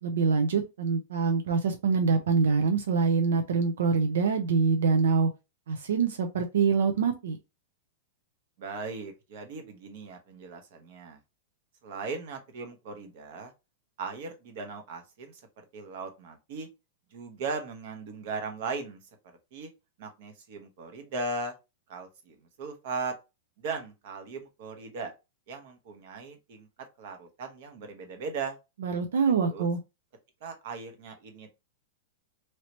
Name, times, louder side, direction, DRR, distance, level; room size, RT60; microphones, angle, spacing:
voice 1, 0.0-5.3 5.7-7.4 28.8-29.8, right 5 dB, 90° right, 0.5 m, -25 dB
voice 2, 8.6-11.2 11.8-13.5 14.0-15.4 15.7-16.7 17.1-19.0 19.5-19.7 20.0-21.5 21.9-23.1 23.6-25.1 25.5-26.7 27.0-28.6 29.4-29.7 30.4-31.5, right 4 dB, 55° right, 1.0 m, -38 dB
3.1 x 2.8 x 2.9 m
supercardioid pair, 165°, 0 cm